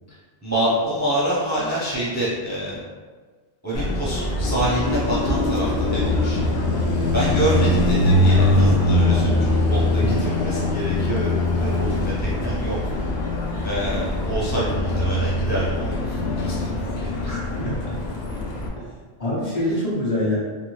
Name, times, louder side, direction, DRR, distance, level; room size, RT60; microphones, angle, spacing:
voice 1, 0.4-2.8 3.6-6.4 7.1-12.8 13.6-15.8 16.0-16.7 17.0-17.4, right 1 dB, 20° right, -8 dB, 0.5 m, -27 dB
Car passing by, 3.7-18.7, left 1 dB, 70° left, 0.8 m, -22 dB
voice 2, 10.0-10.3 17.2-17.8 19.2-20.4, left 1 dB, 40° left, -8 dB, 0.8 m, -25 dB
2.6 x 2.6 x 3.1 m, 1.4 s
omnidirectional pair, 1.1 m